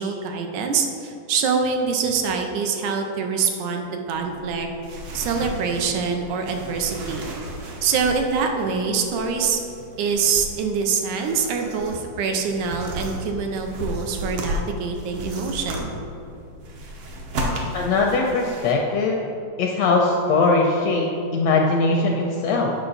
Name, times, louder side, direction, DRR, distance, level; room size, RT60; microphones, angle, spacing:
voice 1, 0.0-4.7 5.1-7.3 7.8-9.6 10.0-15.9, right 5 dB, 85° right, 4 dB, 2.1 m, -24 dB
sound 1, 4.1-18.7, equal, 65° right, 1.5 m, -34 dB
voice 2, 17.7-19.2 19.6-22.7, left 3 dB, 75° left, 0 dB, 1.5 m, -20 dB
8.9 x 5.7 x 4.0 m, 2.7 s
omnidirectional pair, 3.5 m